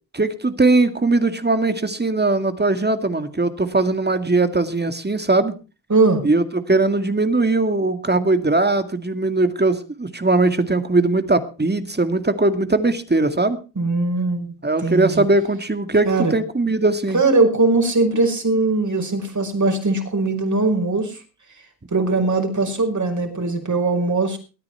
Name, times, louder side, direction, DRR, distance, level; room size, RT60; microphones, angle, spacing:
voice 1, 0.1-5.5 6.2-13.6 14.6-17.2, right 2 dB, 20° right, 10 dB, 2.1 m, -20 dB
voice 2, 5.9-6.2 13.8-14.5 14.8-15.3 16.1-16.3 17.1-21.2 21.9-24.4, right 3 dB, 40° right, 4 dB, 5.4 m, -20 dB
21.5 x 9.6 x 4.5 m, 0.34 s
cardioid pair, 55°, 44 cm